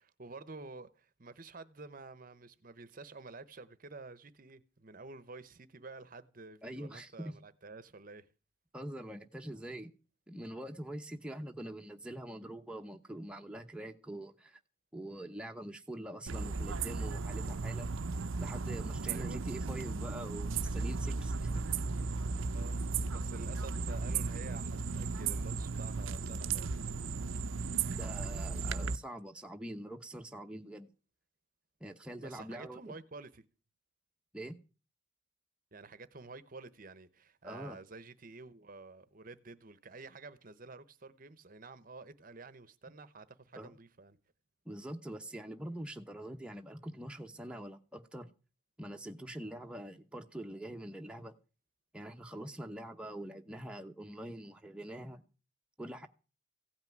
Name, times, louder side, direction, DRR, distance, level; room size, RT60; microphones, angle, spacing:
voice 1, 0.0-8.3 19.0-19.4 22.5-26.9 32.2-33.4 35.7-44.2, right 3 dB, 45° right, 0.8 m, -50 dB
voice 2, 6.6-7.3 8.7-9.9 10.3-14.6 14.9-17.9 18.4-21.5 28.0-30.9 31.8-32.9 34.3-34.6 37.4-37.8 43.5-43.7 44.7-48.3 48.8-51.3 51.9-55.2 55.8-56.1, right 1 dB, 5° right, 0.9 m, -44 dB
sound 1, 16.3-29.0, right 4 dB, 75° right, 0.6 m, -35 dB
16.0 x 5.9 x 9.3 m
head